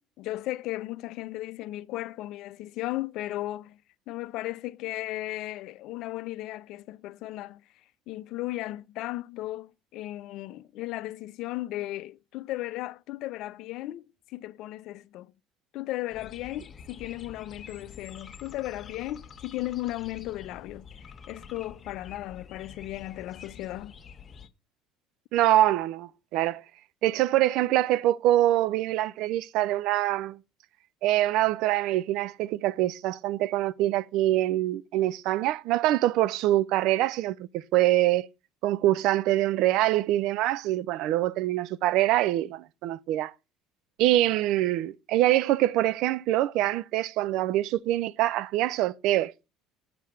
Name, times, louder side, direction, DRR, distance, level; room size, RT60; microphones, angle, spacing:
voice 1, 0.2-3.8 4.1-7.6 8.1-15.3 15.7-24.0, left 16 dB, 65° left, 0.5 m, -36 dB
sound 1, 16.1-24.5, left 6 dB, 40° left, 1.4 m, -47 dB
voice 2, 25.3-26.6 27.0-30.4 31.0-38.3 38.6-43.3 44.0-49.3, right 14 dB, 65° right, 0.6 m, -24 dB
7.4 x 6.9 x 7.9 m
hypercardioid pair, 70°, 0 cm